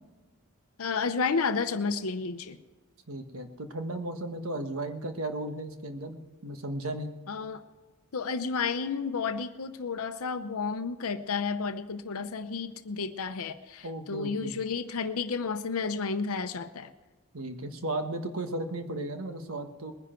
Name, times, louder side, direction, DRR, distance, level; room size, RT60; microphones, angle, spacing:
voice 1, 0.8-2.6 7.3-7.6 8.1-16.9, left 5 dB, 70° left, 10 dB, 0.7 m, -31 dB
voice 2, 3.1-7.2 13.8-14.5 17.3-19.9, right 1 dB, 65° right, 6 dB, 1.4 m, -35 dB
21.0 x 10.5 x 4.5 m, 1.3 s
head